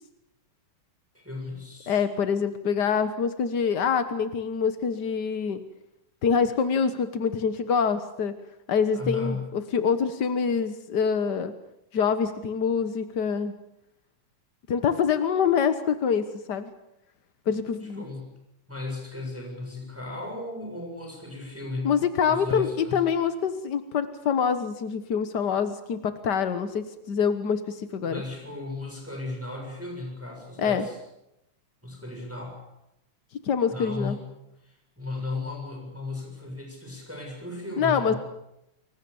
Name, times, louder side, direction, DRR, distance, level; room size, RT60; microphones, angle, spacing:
voice 1, 1.1-2.0 8.9-9.4 17.8-18.3 18.7-21.9 22.3-23.0 28.0-31.0 31.8-32.6 33.7-34.2 34.6-38.2, left 2 dB, 5° right, 1 dB, 7.3 m, -35 dB
voice 2, 1.9-5.6 6.2-8.3 8.7-11.5 11.9-13.5 14.7-16.7 17.5-18.0 21.8-28.2 30.6-30.9 33.4-34.2 37.8-38.1, left 6 dB, 60° left, 10 dB, 1.0 m, -25 dB
29.5 x 23.0 x 7.1 m, 0.86 s
omnidirectional pair, 3.7 m